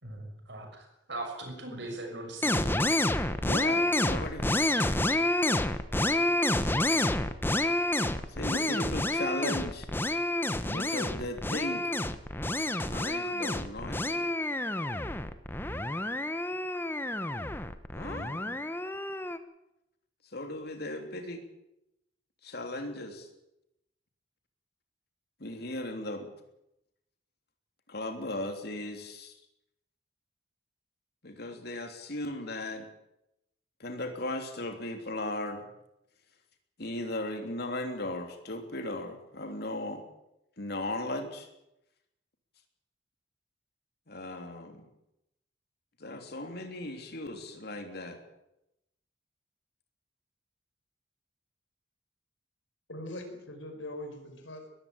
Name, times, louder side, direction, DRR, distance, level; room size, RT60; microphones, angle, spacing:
voice 1, 0.0-2.9 5.3-5.4, right 2 dB, 65° right, 4 dB, 6.6 m, -40 dB
sound 1, 2.4-19.4, left 1 dB, 10° left, 1.0 m, -29 dB
voice 2, 3.4-4.6 8.3-9.9 10.6-11.9 12.9-14.3 17.9-18.6 20.3-21.4 22.4-23.3 25.4-26.3 27.9-29.3 31.2-32.8 33.8-35.7 36.8-40.0 40.6-41.5 44.1-44.9 46.0-48.2, left 1 dB, 55° left, 5 dB, 3.2 m, -37 dB
voice 3, 52.9-54.7, left 1 dB, 85° left, 6 dB, 5.0 m, -41 dB
21.0 x 15.5 x 9.0 m, 0.86 s
head